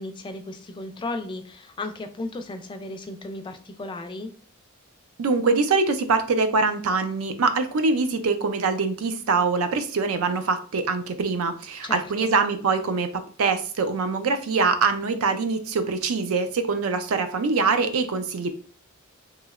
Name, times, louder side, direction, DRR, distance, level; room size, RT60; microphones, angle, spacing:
voice 1, 0.0-4.3 11.8-12.3, left 2 dB, 20° left, 6 dB, 0.3 m, -35 dB
voice 2, 5.2-18.5, right 4 dB, 70° right, 9 dB, 0.4 m, -24 dB
3.0 x 2.8 x 2.4 m, 0.42 s
head